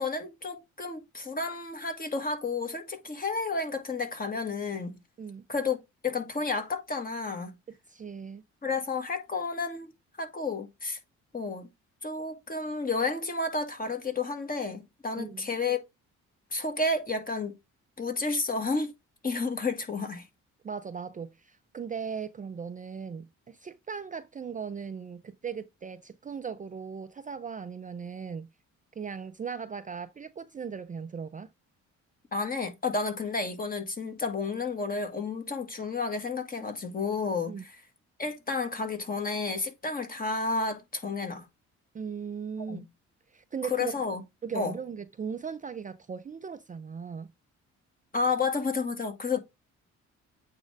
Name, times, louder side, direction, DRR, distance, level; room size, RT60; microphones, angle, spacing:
voice 1, 0.0-5.0 5.5-5.8 6.0-7.5 8.6-9.9 10.2-11.0 11.3-11.7 12.0-15.8 16.5-17.6 18.0-18.9 19.2-20.3 32.3-37.5 38.2-41.5 42.7-42.8 43.7-44.2 44.5-44.7 48.1-49.4, left 4 dB, 30° left, 1.8 m, -31 dB
voice 2, 7.9-8.4 15.2-15.5 20.6-28.5 29.0-31.5 37.5-37.6 41.9-42.9 43.3-43.9 44.4-47.3, right 6 dB, 25° right, 0.5 m, -38 dB
8.6 x 3.7 x 3.4 m
cardioid pair, 90°, 30 cm